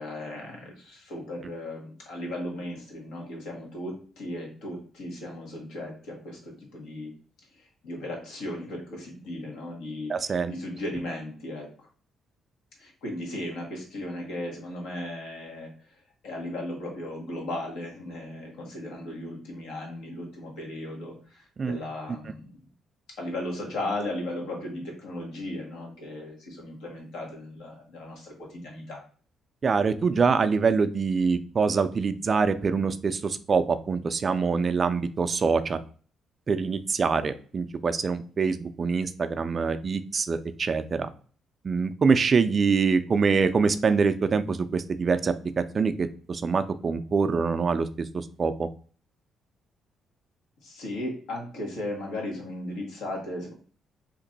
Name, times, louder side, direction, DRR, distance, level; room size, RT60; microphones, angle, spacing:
voice 1, 0.0-7.1 7.5-11.9 12.8-15.9 16.2-22.6 23.2-29.0 50.6-53.5, left 1 dB, 90° left, -1 dB, 1.4 m, -36 dB
voice 2, 10.1-10.5 21.6-21.8 29.6-35.8 36.5-41.1 41.6-48.7, right 5 dB, 40° right, 10 dB, 0.3 m, -25 dB
2.9 x 2.6 x 3.9 m, 0.42 s
cardioid pair, 90°, 0 cm